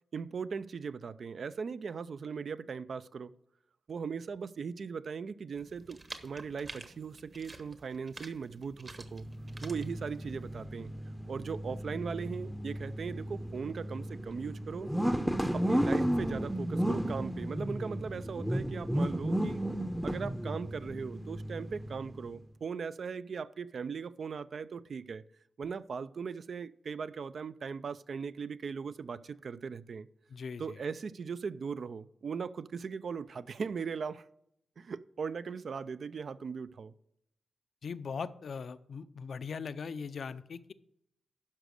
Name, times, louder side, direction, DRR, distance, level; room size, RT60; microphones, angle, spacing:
voice 1, 0.1-3.3 3.9-9.3 9.6-10.9 11.3-14.9 15.5-19.6 20.0-25.2 25.6-30.1 30.6-34.2 34.8-36.9, right 5 dB, 65° right, 0.4 m, -39 dB
sound 1, 5.5-10.7, right 2 dB, 35° right, 1.1 m, -50 dB
sound 2, 9.0-22.4, equal, ahead, 0.6 m, -34 dB
voice 2, 30.3-30.8 37.8-40.7, left 5 dB, 70° left, 0.5 m, -40 dB
12.0 x 5.1 x 6.4 m
cardioid pair, 85°, 0 cm